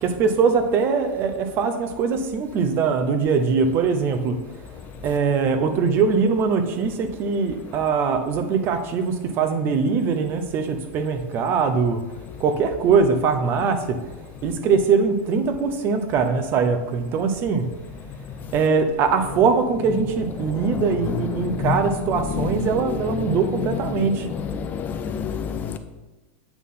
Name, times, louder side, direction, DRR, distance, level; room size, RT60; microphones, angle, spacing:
voice 1, 0.0-4.4 5.0-12.0 12.4-14.0 14.4-17.7 18.5-24.3, right 5 dB, 35° right, 0.8 m, -22 dB
voice 2, 21.4-21.8 22.4-22.5 24.6-25.8, left 7 dB, 30° left, 0.4 m, -27 dB
8.2 x 3.8 x 5.6 m
supercardioid pair, 140°, 6 cm